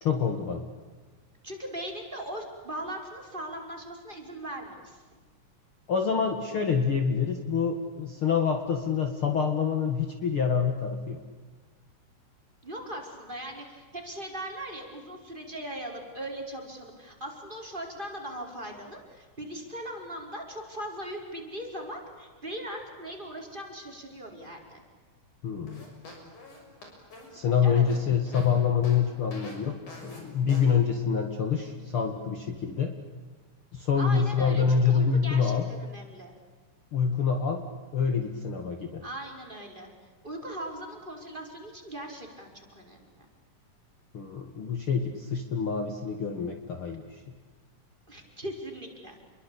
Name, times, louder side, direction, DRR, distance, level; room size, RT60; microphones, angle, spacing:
voice 1, 0.0-0.6 5.9-11.2 25.4-25.9 27.3-32.9 33.7-35.7 36.9-37.6 37.9-39.0 44.1-47.2, left 6 dB, 45° left, 4 dB, 2.6 m, -26 dB
voice 2, 1.4-5.2 12.6-24.8 27.6-27.8 33.9-36.3 39.0-39.9 40.2-43.3 48.1-49.2, right 1 dB, 15° right, 1 dB, 5.3 m, -39 dB
sound 1, 25.7-28.5 28.8-29.0 29.3-29.6 29.9-30.2 30.5-30.7, left 2 dB, 65° left, 8.1 m, -46 dB
29.5 x 23.0 x 8.7 m, 1.4 s
omnidirectional pair, 3.7 m